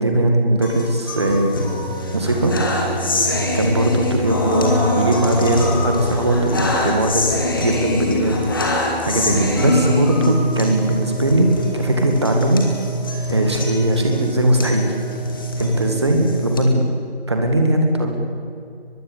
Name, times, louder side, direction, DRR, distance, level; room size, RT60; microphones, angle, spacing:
voice 1, 0.0-1.6 2.1-2.7 3.5-7.3 7.6-8.4 9.0-12.7 13.3-14.9 15.6-16.9 17.3-18.1, right 1 dB, 25° right, 3 dB, 1.9 m, -19 dB
sound 1, 0.6-16.6, left 1 dB, 20° left, 2.3 m, -23 dB
22.5 x 22.5 x 8.4 m, 2.4 s
figure-of-eight pair, 165°, 32 cm